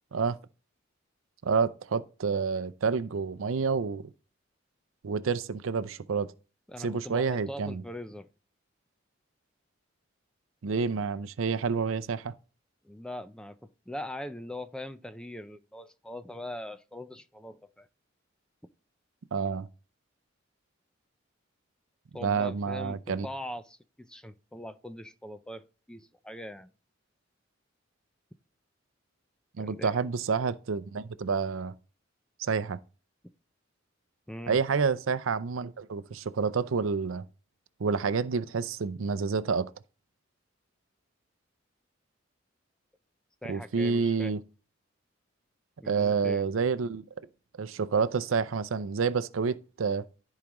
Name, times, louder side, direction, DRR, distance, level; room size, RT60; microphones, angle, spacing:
voice 1, 1.4-4.1 5.0-6.3 6.8-7.8 10.6-12.3 19.3-19.7 22.2-23.3 29.6-31.7 32.4-32.8 34.5-37.2 37.8-39.7 43.5-44.4 45.9-47.0 47.6-50.1, right 5 dB, 85° right, 0.5 m, -29 dB
voice 2, 6.7-8.3 12.8-13.6 13.9-17.9 22.1-23.0 23.2-26.7 29.6-30.0 34.3-34.6 43.4-44.3 45.8-46.4, left 1 dB, 5° left, 0.4 m, -41 dB
14.0 x 4.8 x 3.0 m
head